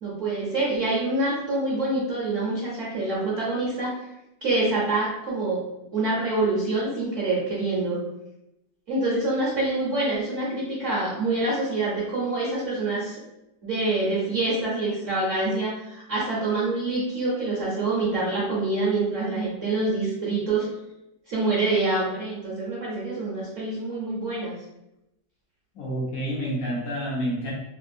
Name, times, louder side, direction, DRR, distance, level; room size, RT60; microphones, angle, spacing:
voice 1, 0.0-4.0 4.4-5.6 5.9-8.0 8.9-13.2 13.6-20.7 21.3-24.5, right 2 dB, 55° right, -7 dB, 0.9 m, -26 dB
voice 2, 25.8-27.5, equal, 65° left, -5 dB, 0.8 m, -28 dB
3.3 x 2.5 x 2.6 m, 0.89 s
omnidirectional pair, 2.3 m